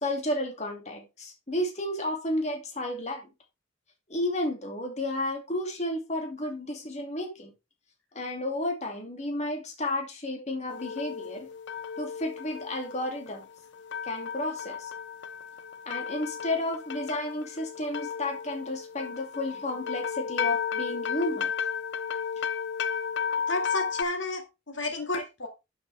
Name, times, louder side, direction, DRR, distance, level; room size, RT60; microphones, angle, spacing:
voice 1, 0.0-3.2 4.1-7.5 8.1-11.5 12.0-13.5 14.0-14.9 15.9-21.5 22.4-22.5 25.1-25.2, left 1 dB, 35° left, 3 dB, 2.4 m, -32 dB
sound 1, 10.7-24.0, left 7 dB, 70° left, 0.6 m, -34 dB
voice 2, 23.5-25.5, left 2 dB, 85° left, 4 dB, 2.0 m, -31 dB
11.5 x 6.9 x 3.4 m, 0.26 s
head